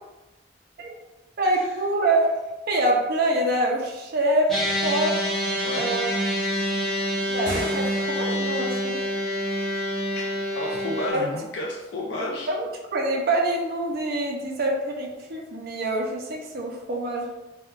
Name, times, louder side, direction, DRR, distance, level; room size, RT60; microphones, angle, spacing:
voice 1, 1.4-2.3 2.7-4.5 4.8-5.1 5.8-6.1 7.3-9.0 11.1-11.2 12.5-17.3, right 1 dB, 55° right, 0 dB, 0.5 m, -25 dB
sound 1, 4.5-11.1, equal, ahead, 0.7 m, -27 dB
sound 2, 7.3-8.6, right 1 dB, 90° right, 0.7 m, -35 dB
voice 2, 10.5-12.5, left 1 dB, 70° left, -3 dB, 0.4 m, -31 dB
3.6 x 2.2 x 2.3 m, 1.1 s
head